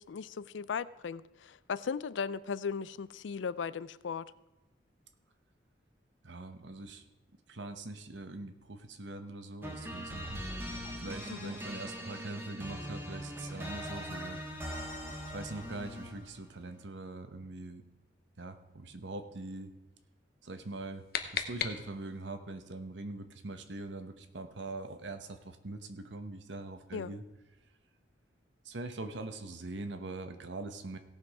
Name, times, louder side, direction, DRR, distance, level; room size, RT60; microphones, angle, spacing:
voice 1, 0.0-4.3 11.3-11.5 26.9-27.1, left 6 dB, 80° left, 18 dB, 0.4 m, -37 dB
voice 2, 6.2-7.0 7.5-10.5 11.0-14.4 15.3-17.8 18.4-19.7 20.4-21.0 21.3-27.2 28.6-31.0, right 2 dB, 75° right, 8 dB, 1.0 m, -42 dB
sound 1, 9.6-16.3, equal, 10° right, 1.4 m, -41 dB
sound 2, 20.6-22.3, left 7 dB, 55° left, 0.8 m, -38 dB
17.0 x 6.1 x 4.8 m, 1.0 s
head